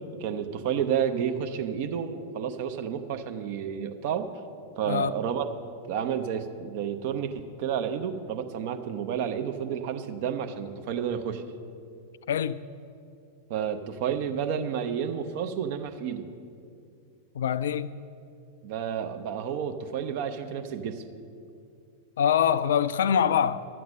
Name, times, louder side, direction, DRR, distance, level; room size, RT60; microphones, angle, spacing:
voice 1, 0.2-4.3 4.8-5.4 5.9-11.4 13.5-16.2 18.6-21.0, right 8 dB, 50° right, 0.7 m, -30 dB
voice 2, 12.3-12.6 17.3-17.9 22.2-23.7, left 8 dB, 60° left, 0.3 m, -24 dB
12.5 x 7.7 x 5.5 m
figure-of-eight pair, 90°, 0 cm